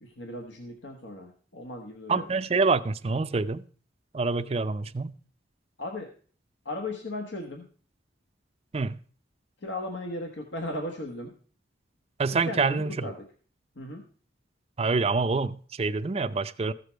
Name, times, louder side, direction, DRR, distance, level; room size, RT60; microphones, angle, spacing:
voice 1, 0.0-2.3 5.8-6.1 6.6-7.6 9.6-11.3 12.5-13.2 13.8-14.0, left 1 dB, 80° left, 1.4 m, -36 dB
voice 2, 2.1-3.6 4.1-5.1 8.7-9.0 12.2-13.1 14.8-16.7, right 4 dB, 35° right, 0.4 m, -26 dB
14.5 x 6.8 x 4.5 m
head